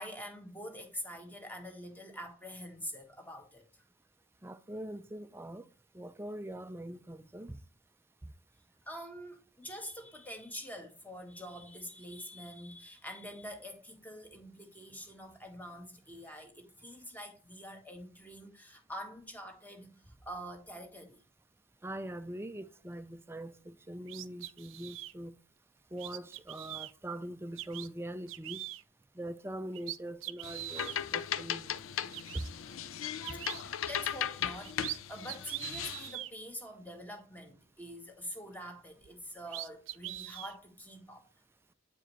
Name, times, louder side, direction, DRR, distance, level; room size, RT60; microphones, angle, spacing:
voice 1, 0.0-3.7 8.9-21.2 33.5-41.3, equal, 10° left, 1.4 m, -46 dB
voice 2, 4.4-5.7 5.9-7.6 21.8-25.3 25.9-28.6 29.2-31.8 32.3-32.4, right 1 dB, 10° right, 0.4 m, -42 dB
sound 1, 24.1-25.1 26.0-26.9 27.6-27.9 28.3-28.8 29.4-29.5 29.7-31.0 31.8-31.9 32.1-32.5 33.2-33.6 34.4-35.0 35.3-36.3 39.0-39.1 39.5-40.5, right 15 dB, 75° right, 0.5 m, -42 dB
sound 2, 30.4-36.1, left 9 dB, 85° left, 0.5 m, -37 dB
8.9 x 4.8 x 3.0 m
head